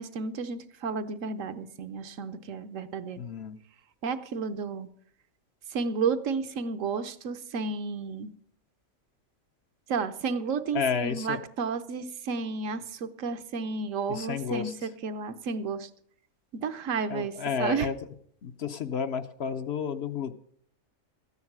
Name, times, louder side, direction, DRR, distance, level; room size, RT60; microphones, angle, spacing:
voice 1, 0.0-3.2 4.0-4.9 5.7-8.3 9.9-15.9 16.6-17.9, right 5 dB, 75° right, 10 dB, 1.1 m, -32 dB
voice 2, 3.2-3.6 10.7-11.4 14.1-14.7 17.1-18.0 18.4-20.3, left 6 dB, 60° left, 9 dB, 0.8 m, -31 dB
14.0 x 9.6 x 6.0 m, 0.65 s
omnidirectional pair, 1.4 m